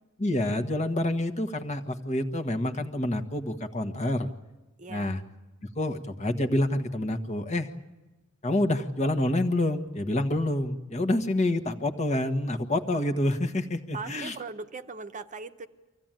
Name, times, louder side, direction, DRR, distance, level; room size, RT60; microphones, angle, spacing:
voice 1, 0.2-4.3 4.9-5.2 5.7-7.7 8.4-14.3, left 1 dB, 35° left, 6 dB, 1.5 m, -27 dB
voice 2, 4.8-5.2 13.9-15.7, right 4 dB, 35° right, 8 dB, 0.9 m, -39 dB
25.0 x 16.0 x 9.1 m, 1.1 s
head